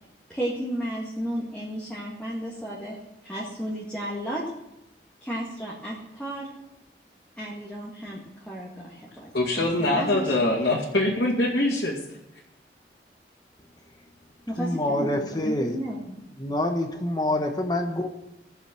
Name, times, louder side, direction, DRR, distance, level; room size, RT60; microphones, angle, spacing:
voice 1, 0.3-4.4 5.2-6.5 7.4-10.7 14.5-16.2, equal, 5° left, -5 dB, 1.9 m, -33 dB
voice 2, 9.3-11.9, left 1 dB, 70° left, -7 dB, 2.3 m, -23 dB
voice 3, 14.6-15.8 16.4-18.1, left 1 dB, 20° left, 5 dB, 1.0 m, -26 dB
16.0 x 7.2 x 7.5 m, 0.92 s
head